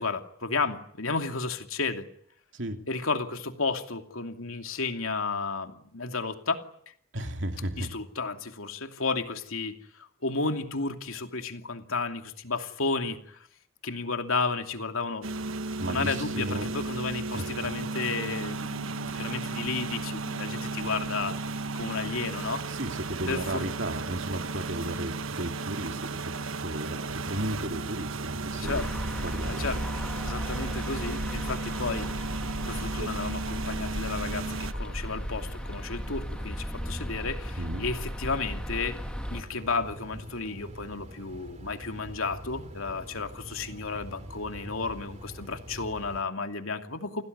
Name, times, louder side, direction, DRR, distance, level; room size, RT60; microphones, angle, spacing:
voice 1, 0.0-2.1 2.9-6.6 7.8-13.4 13.8-15.3 15.9-22.7 23.3-23.7 28.5-28.9 29.5-29.8 30.2-32.3 32.7-39.0 39.3-47.2, left 4 dB, 80° left, 6 dB, 2.8 m, -32 dB
voice 2, 7.1-7.9 15.8-16.7 17.3-17.5 22.7-28.9 29.2-29.8 37.6-37.8, right 1 dB, 60° right, 5 dB, 3.0 m, -34 dB
sound 1, 15.2-34.7, right 3 dB, 75° right, 1.3 m, -34 dB
sound 2, 27.1-46.2, equal, 35° right, 2.5 m, -44 dB
sound 3, 28.6-39.4, equal, 5° left, 2.0 m, -35 dB
29.5 x 19.5 x 9.5 m, 0.65 s
head